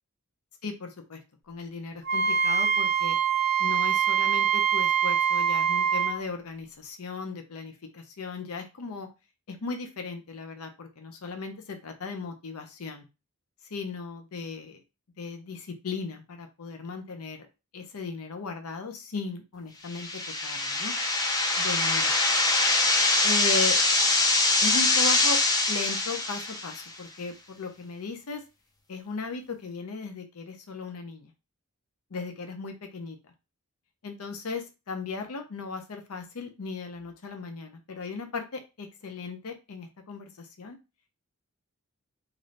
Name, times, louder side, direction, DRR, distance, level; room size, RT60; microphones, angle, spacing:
voice 1, 0.6-1.2 1.5-3.2 3.6-9.1 9.5-13.0 13.6-14.8 15.2-17.5 17.7-20.9 21.6-22.1 23.2-23.8 24.6-25.4 25.7-28.4 28.9-31.3 32.1-33.2 34.0-40.8, left 4 dB, 80° left, 5 dB, 0.6 m, -37 dB
Wind instrument woodwind instrument, 2.1-6.2, right 7 dB, 45° right, 0.6 m, -24 dB
sound 1, 19.9-26.9, left 2 dB, 15° left, 0.3 m, -24 dB
2.6 x 2.6 x 3.1 m, 0.27 s
head